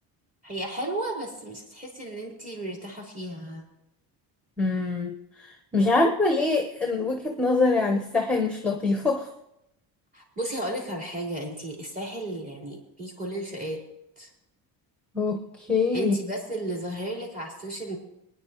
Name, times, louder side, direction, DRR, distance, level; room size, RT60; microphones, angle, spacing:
voice 1, 0.4-3.6 10.1-13.8 14.2-14.3 15.9-18.0, right 1 dB, 20° right, -2 dB, 4.4 m, -34 dB
voice 2, 4.6-9.3 15.1-16.1, left 3 dB, 5° left, 3 dB, 1.1 m, -24 dB
24.5 x 10.0 x 3.0 m, 0.84 s
cardioid pair, 120°, 40 cm